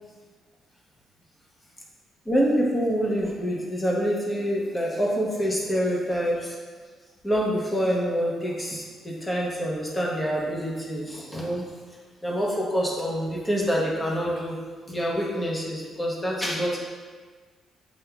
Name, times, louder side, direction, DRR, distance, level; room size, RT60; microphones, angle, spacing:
voice 1, 2.3-6.5 7.2-11.6 12.2-14.6 14.9-16.8, equal, 15° left, -3 dB, 1.0 m, -26 dB
7.8 x 2.6 x 2.3 m, 1.5 s
cardioid pair, 105°, 0 cm